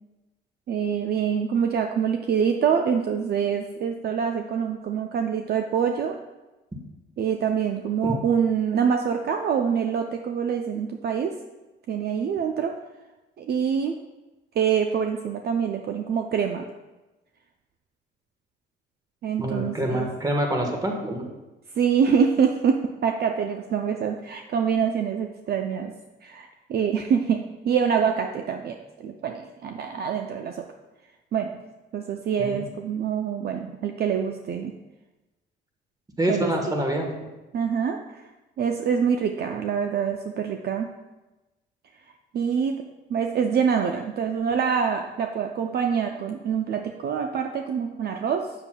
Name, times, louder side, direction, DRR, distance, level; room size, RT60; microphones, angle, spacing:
voice 1, 0.7-6.2 7.2-11.3 11.9-12.8 13.4-14.0 14.6-16.7 19.2-20.1 21.7-25.9 26.2-30.7 31.3-31.6 31.9-34.7 36.3-36.7 37.5-38.2 38.6-40.9 42.3-42.8 43.1-48.5, right 7 dB, 55° right, 5 dB, 0.4 m, -25 dB
voice 2, 19.4-21.2 32.4-32.6 36.2-37.1, right 1 dB, 20° right, 2 dB, 1.3 m, -26 dB
7.2 x 6.7 x 2.2 m, 1.1 s
cardioid pair, 90°, 20 cm